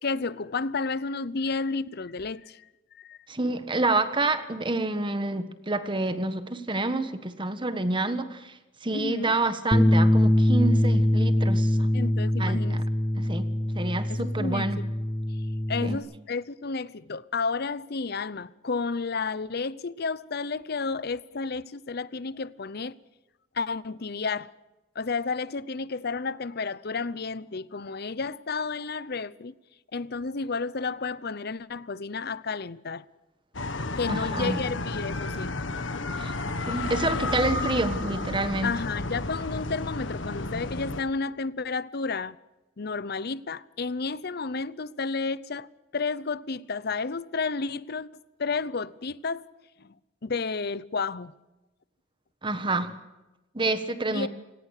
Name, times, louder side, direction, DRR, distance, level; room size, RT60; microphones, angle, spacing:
voice 1, 0.0-2.6 3.0-3.2 8.9-9.3 11.9-12.8 14.1-14.7 15.7-23.0 23.5-24.5 25.0-29.5 29.9-33.0 34.0-35.5 38.6-42.4 42.8-45.7 45.9-48.1 48.4-49.4 49.8-49.9 50.2-51.3 54.1-54.3, left 4 dB, 55° left, 0.7 m, -31 dB
voice 2, 3.3-11.8 12.4-12.8 13.2-13.5 13.7-14.8 15.8-16.0 34.1-34.6 36.2-36.3 36.7-38.7 52.4-52.9 53.5-54.3, right 2 dB, 25° right, 1.5 m, -28 dB
Bass guitar, 9.7-16.0, left 1 dB, 15° left, 0.9 m, -23 dB
sound 1, 33.5-41.0, left 2 dB, 80° left, 1.6 m, -32 dB
29.0 x 18.0 x 6.7 m
head